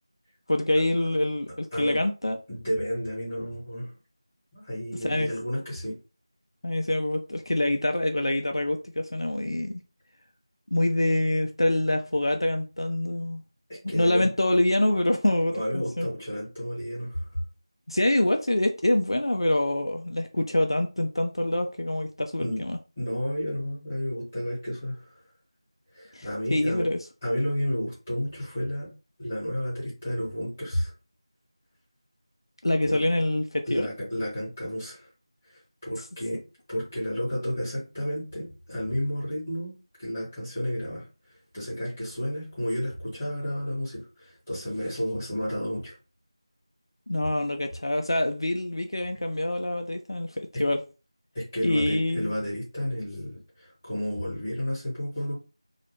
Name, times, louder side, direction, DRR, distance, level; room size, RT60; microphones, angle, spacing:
voice 1, 0.5-2.4 5.0-5.3 6.6-9.8 10.7-13.4 13.9-16.1 17.9-22.8 26.1-27.0 32.6-33.9 47.1-50.8 51.6-52.3, left 1 dB, 60° left, 0.3 m, -25 dB
voice 2, 2.5-3.9 4.5-6.0 13.7-14.3 15.5-17.2 22.4-22.6 23.0-25.1 25.9-26.9 27.2-28.9 29.2-30.9 32.8-33.0 33.6-35.1 35.8-36.4 36.7-41.1 41.5-45.9 51.3-55.3, equal, 10° left, 1.0 m, -31 dB
2.3 x 2.1 x 3.0 m
figure-of-eight pair, 180°, 3 cm